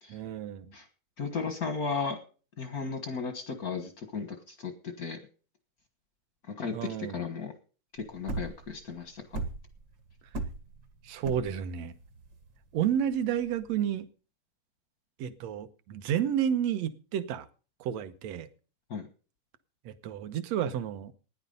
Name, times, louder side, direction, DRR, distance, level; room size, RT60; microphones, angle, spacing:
voice 1, 0.1-0.7 6.7-7.2 11.0-11.9 12.7-14.1 15.2-17.5 17.8-18.5 19.9-21.1, right 9 dB, 70° right, 1.7 m, -31 dB
voice 2, 1.2-2.2 2.6-5.2 6.5-7.5 7.9-9.4 18.9-19.1, left 5 dB, 60° left, 0.9 m, -35 dB
sound 1, 8.0-13.9, right 3 dB, 50° right, 1.4 m, -38 dB
14.0 x 10.0 x 5.3 m
omnidirectional pair, 3.8 m